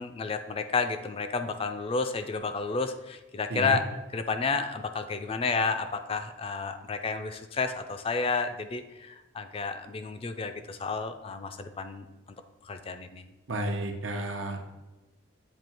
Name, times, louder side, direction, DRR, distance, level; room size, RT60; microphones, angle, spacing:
voice 1, 0.0-12.1 12.6-13.3, left 4 dB, 30° left, 8 dB, 0.4 m, -31 dB
voice 2, 13.5-14.6, right 1 dB, 85° right, 4 dB, 0.9 m, -31 dB
7.8 x 2.8 x 4.3 m, 1.1 s
head